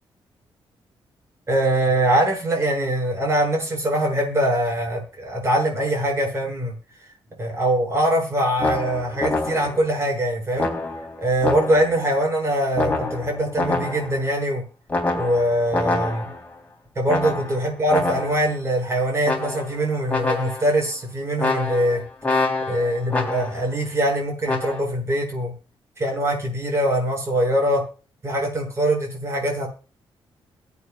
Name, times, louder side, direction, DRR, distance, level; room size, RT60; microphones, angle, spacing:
voice 1, 1.5-6.7 7.4-10.7 11.2-14.6 15.1-16.3 17.0-22.0 22.7-25.5 26.0-27.8 28.2-29.7, right 1 dB, 30° right, -1 dB, 7.2 m, -22 dB
sound 1, 8.6-9.9 10.6-12.0 12.7-14.3 14.9-16.5 17.1-18.5 19.2-19.8 20.1-20.8 21.4-23.7 24.4-24.8, left 2 dB, 15° left, 3.7 m, -26 dB
23.5 x 8.6 x 2.5 m, 0.36 s
cardioid pair, 120°, 9 cm